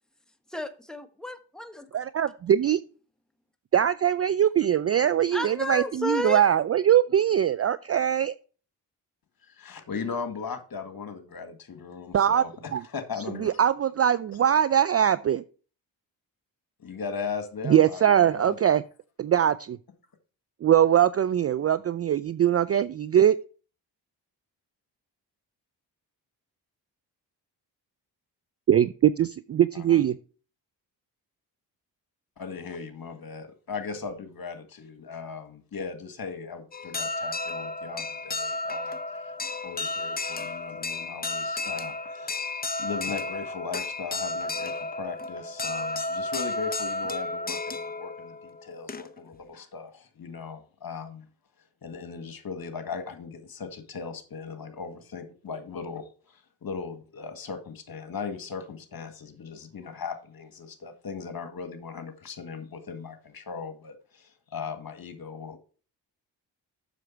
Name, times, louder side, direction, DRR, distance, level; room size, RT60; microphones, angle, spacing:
voice 1, 0.5-1.9 5.3-6.4, left 1 dB, ahead, 1.5 m, -32 dB
voice 2, 1.9-2.8 3.7-8.3 12.1-12.4 12.7-12.8 13.4-15.4 17.7-18.8 19.2-19.8 20.6-23.4 28.7-30.2, right 10 dB, 35° right, 0.4 m, -22 dB
voice 3, 9.4-13.6 16.8-18.7 29.7-30.0 32.4-39.4 39.6-42.5 42.8-51.3 51.8-65.6, left 5 dB, 45° left, 1.9 m, -38 dB
sound 1, 36.7-49.4, left 2 dB, 20° left, 0.8 m, -33 dB
7.6 x 6.5 x 4.5 m
hypercardioid pair, 45°, 49 cm